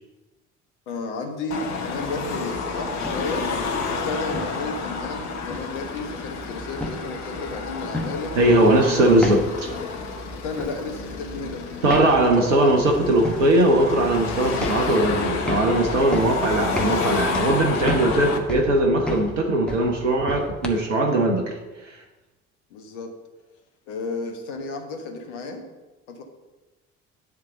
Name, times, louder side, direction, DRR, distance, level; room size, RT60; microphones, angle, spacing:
voice 1, 0.9-3.5 3.9-8.4 8.8-9.5 10.4-11.6 12.4-12.8 22.7-23.1 23.9-25.7 26.1-26.2, left 3 dB, 65° left, 5 dB, 1.3 m, -32 dB
Car passing by / Traffic noise roadway noise / Engine, 1.5-18.4, left 4 dB, 45° left, 1.3 m, -30 dB
sound 1, 3.0-20.7, left 1 dB, 5° left, 1.2 m, -35 dB
voice 2, 8.4-9.4 11.8-21.6, right 1 dB, 80° right, 2 dB, 0.9 m, -20 dB
10.5 x 3.6 x 6.8 m, 1.1 s
figure-of-eight pair, 50°, 37 cm